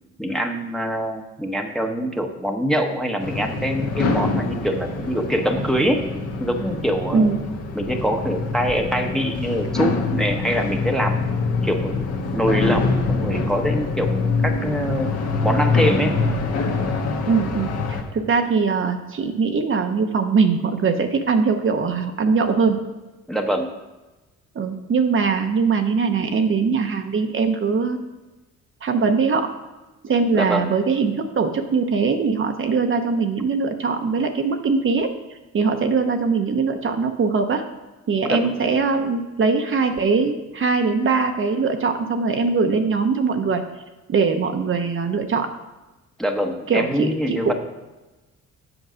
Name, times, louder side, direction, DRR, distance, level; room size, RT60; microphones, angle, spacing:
voice 1, 0.2-6.0 6.4-7.3 7.7-11.2 11.6-15.1 15.4-16.2 23.3-23.7 30.3-30.7 38.2-38.5 46.2-47.5, equal, ahead, 3 dB, 0.9 m, -24 dB
sound 1, 3.2-18.0, left 3 dB, 55° left, 1.3 m, -24 dB
voice 2, 17.3-22.8 24.5-28.0 28.8-29.5 30.0-35.1 35.5-37.6 38.1-43.6 44.1-45.5 46.7-47.5, right 5 dB, 40° right, 5 dB, 0.8 m, -21 dB
8.0 x 4.6 x 6.2 m, 1.1 s
cardioid pair, 90°, 30 cm